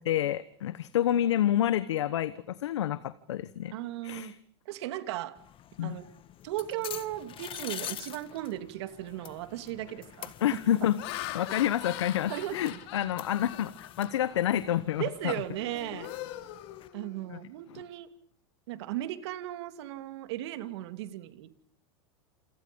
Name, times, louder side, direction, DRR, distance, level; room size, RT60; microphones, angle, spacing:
voice 1, 0.0-3.7 4.0-4.3 5.8-6.0 10.4-11.0 11.3-15.4 17.3-17.4 17.7-17.8, left 11 dB, 85° left, 14 dB, 1.2 m, -28 dB
voice 2, 3.7-4.3 4.7-5.3 5.8-6.1 6.4-10.8 12.3-12.8 15.0-16.1 16.9-18.1 18.7-21.5, right 14 dB, 70° right, 9 dB, 2.7 m, -36 dB
sound 1, 5.3-16.9, left 11 dB, 35° left, 1.6 m, -46 dB
Laughter, 8.9-9.1 9.7-10.0 10.6-14.4 14.9-15.1 15.5-17.4, left 15 dB, 65° left, 2.8 m, -42 dB
28.5 x 27.5 x 5.3 m, 0.62 s
hypercardioid pair, 105°, 14 cm